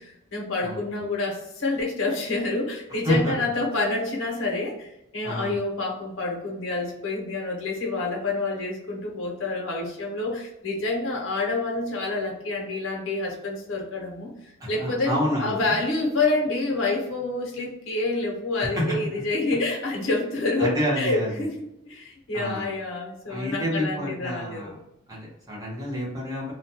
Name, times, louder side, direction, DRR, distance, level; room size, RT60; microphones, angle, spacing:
voice 1, 0.0-21.5 21.9-24.7, left 2 dB, 75° left, -1 dB, 0.8 m, -28 dB
voice 2, 5.2-5.6 14.6-15.6 18.8-18.9 20.6-21.5 22.3-22.7 23.3-24.7 25.1-26.5, equal, 20° right, -5 dB, 0.9 m, -28 dB
2.3 x 2.2 x 2.8 m, 0.85 s
head